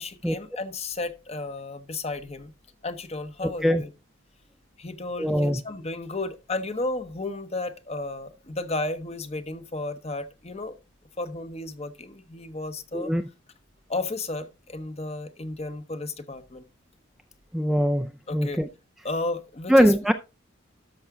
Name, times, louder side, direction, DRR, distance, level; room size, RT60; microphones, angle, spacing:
voice 1, 0.0-2.5 2.8-3.9 4.8-10.8 11.2-13.1 13.9-16.6 18.3-18.6 19.0-19.9, left 2 dB, 30° left, 0.9 m, -33 dB
voice 2, 3.4-3.8 5.2-5.6 12.9-13.2 17.5-18.7 19.7-20.1, equal, ahead, 0.4 m, -22 dB
13.0 x 5.8 x 3.7 m
head